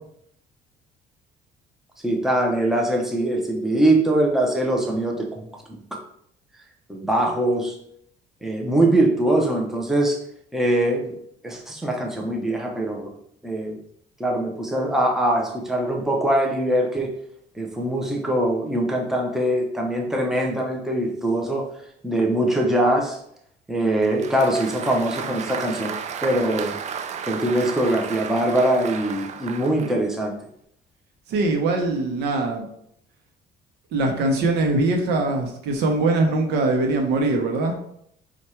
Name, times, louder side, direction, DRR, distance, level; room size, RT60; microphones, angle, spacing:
voice 1, 2.0-5.5 6.9-7.8 8.4-10.2 10.5-11.1 11.4-13.1 13.4-13.8 14.2-17.1 17.6-21.7 22.0-23.2 23.7-25.9 26.2-26.8 27.3-30.3, right 1 dB, ahead, 0 dB, 0.8 m, -22 dB
Applause, 24.0-30.0, right 7 dB, 45° right, 0.4 m, -33 dB
voice 2, 31.3-32.7 33.9-37.8, right 2 dB, 80° right, 3 dB, 0.9 m, -22 dB
4.4 x 2.5 x 4.3 m, 0.70 s
cardioid pair, 110°, 17 cm